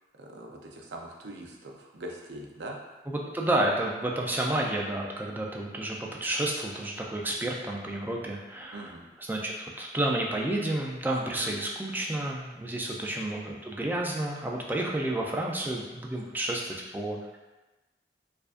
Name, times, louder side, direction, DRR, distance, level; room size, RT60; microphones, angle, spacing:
voice 1, 0.2-2.8 8.7-9.1 13.0-13.1, right 1 dB, 75° right, 1 dB, 0.5 m, -42 dB
voice 2, 3.1-8.9 9.2-17.4, right 1 dB, 10° right, -1 dB, 0.3 m, -30 dB
4.6 x 2.5 x 2.5 m, 1.1 s
head